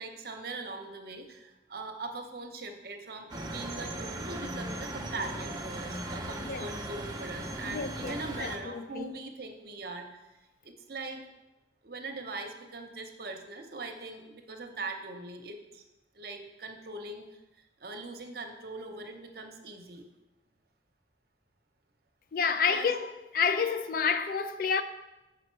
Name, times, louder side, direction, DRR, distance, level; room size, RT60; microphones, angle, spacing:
voice 1, 0.0-10.1 10.6-11.3 11.8-15.8 16.1-17.2 17.8-20.0 22.7-22.9, right 3 dB, 55° right, 0.8 m, -41 dB
sound 1, 3.3-8.6, right 1 dB, 20° right, 0.6 m, -38 dB
voice 2, 7.6-9.1 22.3-24.8, left 5 dB, 50° left, 0.4 m, -29 dB
7.0 x 5.0 x 4.5 m
head